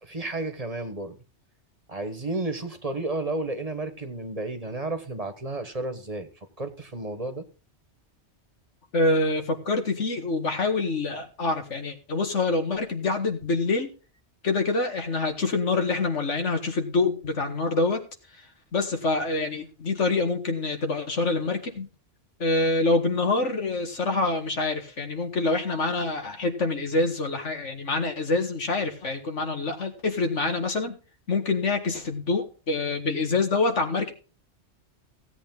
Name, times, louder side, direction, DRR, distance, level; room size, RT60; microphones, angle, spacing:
voice 1, 0.0-1.2 1.9-6.3 6.6-7.5, right 2 dB, 35° right, 9 dB, 1.4 m, -32 dB
voice 2, 8.9-13.9 14.4-18.0 18.7-21.9 22.4-31.0 31.3-34.1, left 3 dB, 90° left, 6 dB, 2.0 m, -26 dB
16.0 x 8.2 x 3.8 m, 0.34 s
omnidirectional pair, 1.2 m